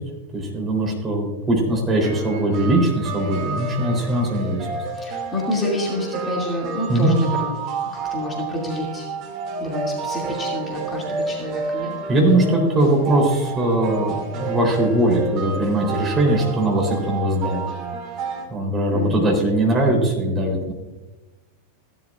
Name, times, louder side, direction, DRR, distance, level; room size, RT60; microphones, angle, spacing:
voice 1, 0.3-4.7 6.9-7.1 12.1-17.7 18.5-20.7, right 1 dB, 20° right, -1 dB, 3.7 m, -20 dB
sound 1, 2.0-18.4, right 4 dB, 40° right, 2.3 m, -30 dB
voice 2, 4.9-7.5 7.8-9.1 9.6-11.9 18.9-19.3, left 1 dB, 15° left, -3 dB, 2.5 m, -28 dB
16.0 x 12.0 x 2.5 m, 1.1 s
figure-of-eight pair, 90°, 0 cm